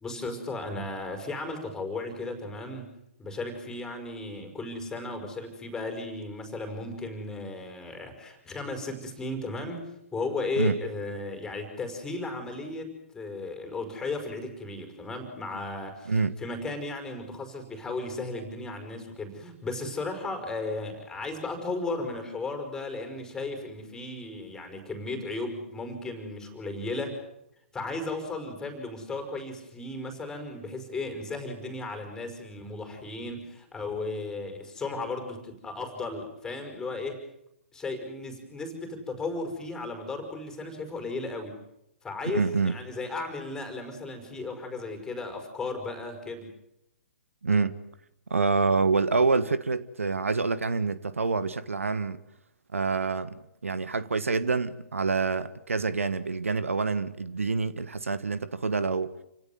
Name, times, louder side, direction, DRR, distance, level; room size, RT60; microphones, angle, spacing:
voice 1, 0.0-2.9 3.2-27.2 27.7-37.2 37.7-41.6 42.0-46.5, left 2 dB, 5° left, 5.4 m, -35 dB
voice 2, 42.2-42.7 47.4-47.7 48.3-52.2 52.7-59.1, right 4 dB, 70° right, 1.3 m, -27 dB
29.0 x 17.5 x 9.3 m
figure-of-eight pair, 125°, 7 cm